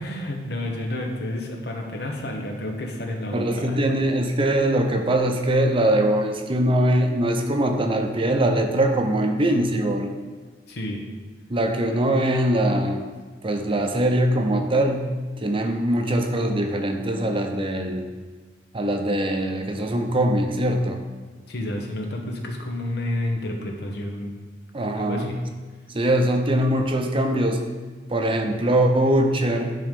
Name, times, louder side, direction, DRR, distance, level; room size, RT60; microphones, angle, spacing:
voice 1, 0.0-3.6 10.7-11.0 21.5-24.3 24.9-25.3, left 1 dB, 65° left, 2 dB, 1.2 m, -30 dB
voice 2, 3.3-10.1 11.5-13.0 13.4-15.0 15.4-18.0 18.7-21.0 24.7-25.3 25.9-27.6 28.1-29.8, right 1 dB, 30° right, 4 dB, 0.7 m, -22 dB
10.0 x 3.8 x 5.2 m, 1.4 s
head